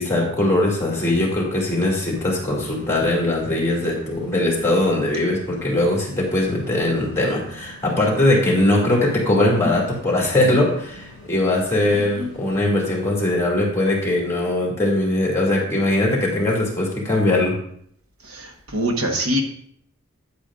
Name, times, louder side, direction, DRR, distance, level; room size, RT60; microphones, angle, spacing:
voice 1, 0.0-17.6, left 1 dB, 15° left, -3 dB, 2.4 m, -20 dB
sound 1, 1.9-12.6, left 1 dB, 50° right, 3.7 m, -45 dB
voice 2, 18.3-19.4, equal, 85° right, 2 dB, 1.4 m, -23 dB
9.7 x 8.5 x 2.5 m, 0.66 s
head